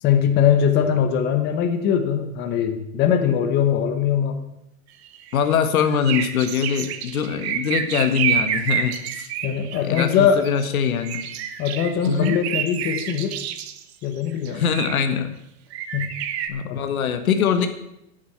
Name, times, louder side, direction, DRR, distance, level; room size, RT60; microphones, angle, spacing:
voice 1, 0.0-4.4 9.4-10.4 11.6-13.4 14.0-14.6 15.9-16.1 16.6-16.8, left 8 dB, 25° left, 6 dB, 1.1 m, -21 dB
sound 1, 5.0-5.5 5.9-10.7 11.0-13.8 14.4-15.1 15.7-16.5, right 9 dB, 50° right, 1.2 m, -28 dB
voice 2, 5.3-9.3 9.8-11.2 12.1-12.4 14.5-15.3 16.5-17.7, left 7 dB, 85° left, 8 dB, 1.7 m, -22 dB
8.7 x 8.6 x 8.1 m, 0.83 s
supercardioid pair, 150°, 41 cm